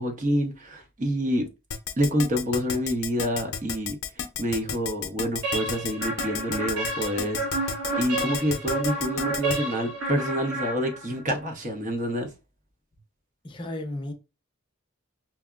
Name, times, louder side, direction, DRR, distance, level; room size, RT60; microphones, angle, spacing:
voice 1, 0.0-1.5 2.0-4.0 4.4-7.4 8.0-12.3, equal, 35° right, 0.7 m, -27 dB
Keyboard (musical), 1.7-9.6, left 7 dB, 80° left, 0.5 m, -31 dB
sound 1, 5.4-11.3, right 2 dB, 90° right, 1.2 m, -31 dB
voice 2, 13.4-14.1, left 1 dB, 25° left, 0.6 m, -33 dB
5.9 x 2.0 x 2.3 m
head